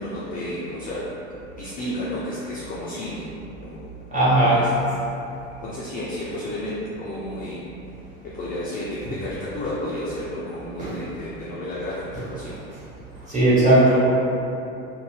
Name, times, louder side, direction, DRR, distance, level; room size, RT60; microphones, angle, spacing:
voice 1, 0.0-3.3 3.6-3.8 4.4-4.7 5.6-7.6 8.2-12.6, left 1 dB, 25° left, -7 dB, 0.3 m, -32 dB
voice 2, 4.1-4.6 10.8-10.9 13.3-14.0, right 1 dB, 20° right, -10 dB, 1.3 m, -17 dB
2.5 x 2.1 x 3.2 m, 2.8 s
hypercardioid pair, 75°, 39 cm